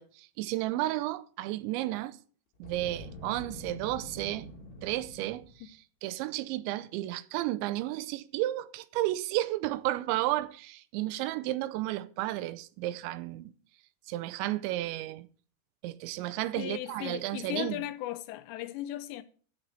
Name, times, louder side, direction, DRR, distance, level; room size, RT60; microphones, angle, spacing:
voice 1, 0.0-2.2 2.6-4.5 4.8-13.5 14.1-15.3 15.8-17.8, right 16 dB, 90° right, 3.0 m, -33 dB
Boom, 2.6-5.7, left 1 dB, 55° left, 4.4 m, -46 dB
voice 2, 16.6-19.2, left 14 dB, 80° left, 2.8 m, -37 dB
14.0 x 8.1 x 4.2 m
omnidirectional pair, 5.1 m